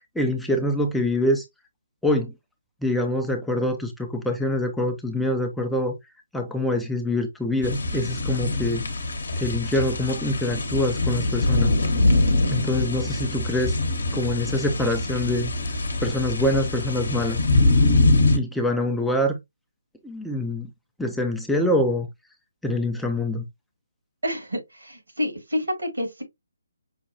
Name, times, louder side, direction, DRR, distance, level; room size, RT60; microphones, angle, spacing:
voice 1, 0.0-1.4 2.0-2.3 2.8-6.0 6.3-8.9 9.4-11.8 12.5-13.8 14.1-15.5 16.0-17.4 18.3-19.4 20.0-20.7 21.0-22.1 22.6-23.4, left 1 dB, ahead, 0.5 m, -25 dB
sound 1, 7.6-18.4, left 2 dB, 60° left, 0.8 m, -23 dB
voice 2, 24.2-26.2, left 1 dB, 70° right, 2.1 m, -28 dB
5.6 x 2.2 x 2.7 m
figure-of-eight pair, 140°, 0 cm